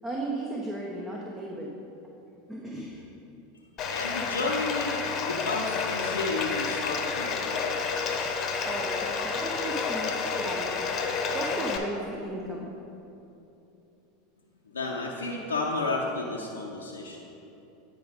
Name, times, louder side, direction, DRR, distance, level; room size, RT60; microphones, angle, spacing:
voice 1, 0.0-1.7 2.5-3.0 8.6-10.9 11.3-12.7, right 2 dB, 15° right, -2 dB, 1.0 m, -35 dB
Bathtub (filling or washing), 3.8-11.8, left 5 dB, 40° left, 1.0 m, -30 dB
voice 2, 3.9-7.8 14.7-17.3, left 3 dB, 85° left, -1 dB, 0.7 m, -32 dB
9.6 x 4.9 x 5.1 m, 2.9 s
hypercardioid pair, 90°, 0 cm